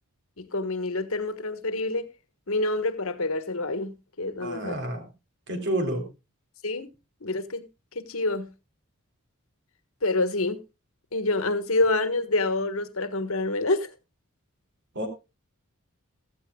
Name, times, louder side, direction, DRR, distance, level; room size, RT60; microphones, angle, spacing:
voice 1, 0.4-2.1 2.5-4.7 6.6-6.9 7.2-7.6 7.9-8.5 10.0-10.6 11.1-13.9, left 2 dB, 70° left, 1.4 m, -27 dB
voice 2, 4.4-5.0 5.5-6.1 15.0-15.1, right 1 dB, 55° right, 3.5 m, -29 dB
15.5 x 14.0 x 2.3 m
head